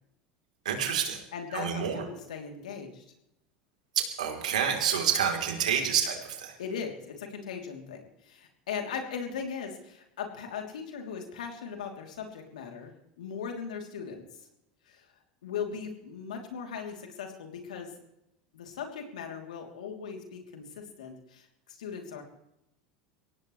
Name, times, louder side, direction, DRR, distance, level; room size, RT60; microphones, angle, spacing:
voice 1, 0.7-1.2 1.5-2.0 4.0-6.5, right 8 dB, 85° right, 3 dB, 3.5 m, -28 dB
voice 2, 1.3-3.0 6.6-14.3 14.9-15.1 15.4-17.9 18.5-22.2, left 6 dB, 85° left, 3 dB, 3.2 m, -39 dB
23.5 x 17.5 x 3.3 m, 0.83 s
hypercardioid pair, 85°, 4 cm